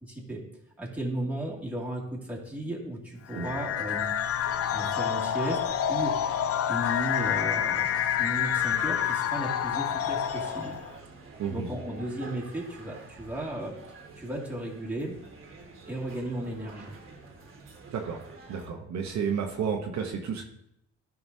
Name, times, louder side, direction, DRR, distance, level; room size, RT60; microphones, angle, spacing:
voice 1, 0.0-0.4 0.8-4.1 4.7-5.6 5.9-6.1 6.7-7.9 8.2-10.8 11.5-13.7 14.2-15.2 15.9-16.9, right 1 dB, 5° right, -4 dB, 2.2 m, -35 dB
sound 1, 3.3-10.9, left 9 dB, 50° left, 0.4 m, -28 dB
sound 2, 4.2-18.7, right 3 dB, 45° right, 1.5 m, -48 dB
voice 2, 18.5-20.5, right 6 dB, 65° right, 2 dB, 0.9 m, -31 dB
11.0 x 5.9 x 2.7 m, 0.77 s
cardioid pair, 90°, 30 cm